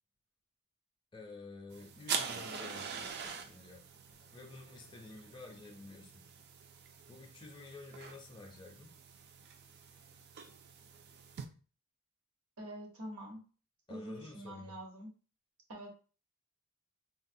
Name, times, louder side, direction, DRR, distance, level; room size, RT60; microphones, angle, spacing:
voice 1, 1.1-3.8 4.2-6.3 7.1-9.0 13.9-14.8, left 3 dB, 20° left, 0.4 m, -51 dB
sound 1, 1.7-11.4, right 6 dB, 50° right, 0.4 m, -44 dB
voice 2, 12.6-13.4 13.9-15.1 15.7-15.9, equal, 75° right, 1.0 m, -45 dB
3.9 x 2.0 x 2.6 m
head